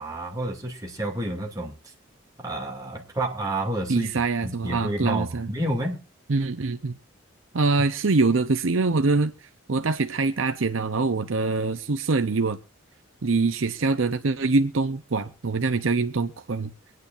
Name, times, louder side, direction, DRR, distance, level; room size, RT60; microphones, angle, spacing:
voice 1, 0.0-1.7 2.4-4.1 4.4-6.0, right 1 dB, 20° right, 2.4 m, -29 dB
voice 2, 3.9-5.5 6.3-7.0 7.5-9.3 9.7-12.6 13.2-16.7, right 3 dB, 75° right, 0.7 m, -24 dB
24.5 x 9.4 x 2.5 m
head